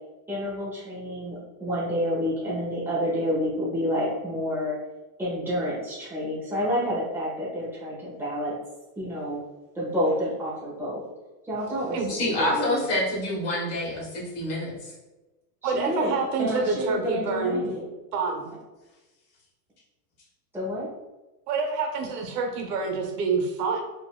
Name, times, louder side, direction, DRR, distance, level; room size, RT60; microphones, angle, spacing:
voice 1, 0.3-4.8 5.2-8.6 9.0-9.4 9.7-11.0 11.4-12.8 15.6-17.9 20.5-20.9, equal, 5° right, -8 dB, 1.1 m, -29 dB
voice 2, 12.1-14.9, left 1 dB, 30° left, -3 dB, 1.3 m, -27 dB
voice 3, 15.6-17.6 18.1-18.5 21.5-23.8, right 4 dB, 80° right, 2 dB, 1.0 m, -27 dB
5.3 x 2.9 x 2.2 m, 1.1 s
supercardioid pair, 160°, 47 cm